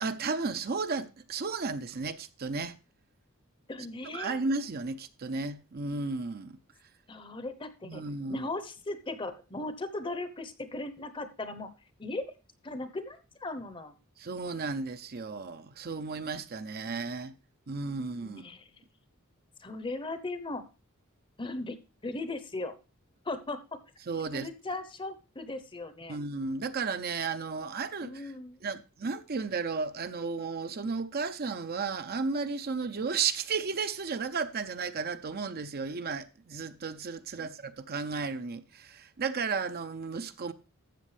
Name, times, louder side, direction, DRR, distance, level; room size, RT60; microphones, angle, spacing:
voice 1, 0.0-2.8 4.1-6.6 7.8-8.5 14.2-17.3 17.7-18.4 24.1-24.5 26.1-28.3 28.6-40.5, right 4 dB, 45° right, 0.6 m, -34 dB
voice 2, 3.7-4.4 7.1-8.0 8.3-11.7 12.0-12.3 12.6-13.9 18.2-18.7 19.6-20.7 21.4-21.8 22.0-22.8 23.2-23.8 24.3-26.2 28.0-28.6 37.4-37.5, left 2 dB, 25° left, 0.8 m, -38 dB
12.5 x 7.6 x 3.3 m
head